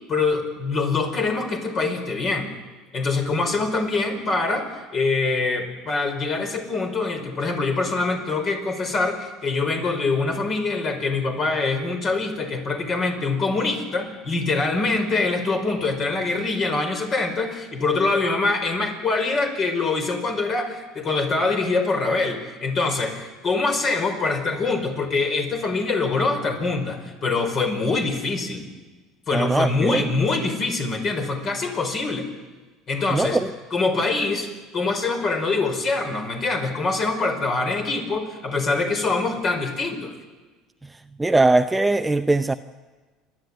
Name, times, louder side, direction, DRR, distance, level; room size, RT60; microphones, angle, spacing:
voice 1, 0.1-2.5 2.9-28.7 29.3-32.3 32.9-33.4 33.7-34.5 34.7-40.1, left 3 dB, 40° left, 5.1 m, -24 dB
voice 2, 29.3-30.1 33.1-33.5 41.2-42.5, right 2 dB, 10° right, 0.6 m, -20 dB
29.5 x 12.0 x 9.1 m
supercardioid pair, 110°, 0 cm